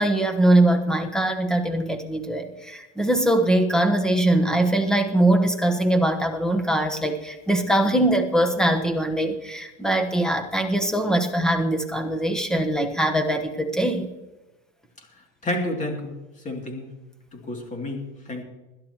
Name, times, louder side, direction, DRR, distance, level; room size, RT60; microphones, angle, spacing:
voice 1, 0.0-14.1, right 1 dB, ahead, 6 dB, 1.1 m, -22 dB
voice 2, 15.4-16.1 16.4-16.9 17.3-18.4, left 1 dB, 20° left, 2 dB, 2.6 m, -30 dB
21.0 x 11.5 x 3.0 m, 1.0 s
supercardioid pair, 135°, 35 cm